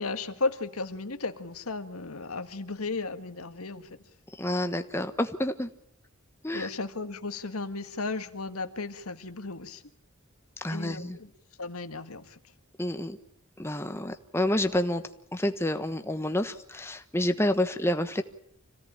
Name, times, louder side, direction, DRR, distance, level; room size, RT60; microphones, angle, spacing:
voice 1, 0.0-4.0 6.5-9.8 10.7-11.3 11.6-12.4, left 3 dB, 90° left, 9 dB, 1.8 m, -34 dB
voice 2, 4.4-5.7 6.4-6.7 10.6-11.2 12.8-13.2 13.6-15.0 15.3-18.2, left 1 dB, 10° left, 8 dB, 1.2 m, -29 dB
26.5 x 17.0 x 8.9 m, 0.70 s
head